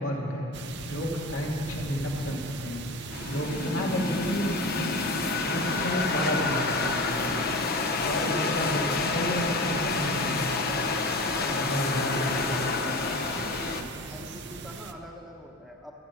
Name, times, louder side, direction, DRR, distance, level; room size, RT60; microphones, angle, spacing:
voice 1, 0.0-7.3 8.0-10.4 11.4-12.5, equal, 75° left, -1 dB, 2.5 m, -31 dB
sound 1, 0.5-14.9, right 4 dB, 50° right, 0.7 m, -40 dB
sound 2, 3.1-13.8, left 4 dB, 45° left, 0.9 m, -29 dB
voice 2, 12.0-12.9 14.1-15.9, equal, ahead, -1 dB, 1.1 m, -43 dB
24.5 x 8.6 x 5.9 m, 2.6 s
head